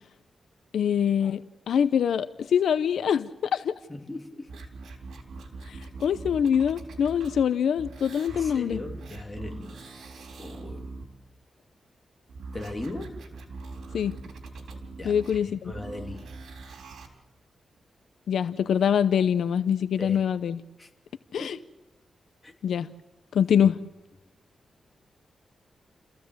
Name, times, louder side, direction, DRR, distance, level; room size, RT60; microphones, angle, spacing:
voice 1, 0.7-1.4 1.7-3.7 5.7-8.8 13.9-14.2 15.0-15.7 18.3-20.6 21.3-21.6 22.6-22.9 23.3-23.7, left 8 dB, 85° left, 0.7 m, -24 dB
voice 2, 3.9-4.6 8.3-9.8 10.4-10.9 12.5-13.2 15.0-16.4 20.0-20.2 20.8-20.9 21.4-21.5 22.4-22.5 23.6-23.7, left 2 dB, 20° left, 3.1 m, -39 dB
sound 1, 4.5-7.5 7.7-11.0 12.3-17.1 17.8-17.9, right 3 dB, 85° right, 4.0 m, -42 dB
29.5 x 15.5 x 8.0 m
cardioid pair, 100°, 0 cm